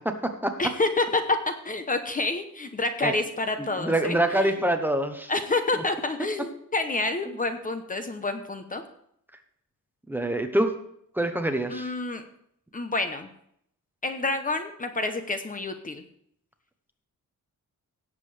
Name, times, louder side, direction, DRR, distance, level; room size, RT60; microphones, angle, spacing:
voice 1, 0.0-0.5 3.0-3.1 3.6-5.3 10.1-10.7 11.1-11.9, right 1 dB, 5° right, 6 dB, 0.9 m, -25 dB
voice 2, 0.6-1.4 1.6-4.5 5.3-8.8 11.7-12.2 12.7-13.3 14.0-16.0, left 2 dB, 25° left, 7 dB, 0.8 m, -28 dB
17.5 x 7.6 x 3.3 m, 0.71 s
wide cardioid pair, 160°, 32 cm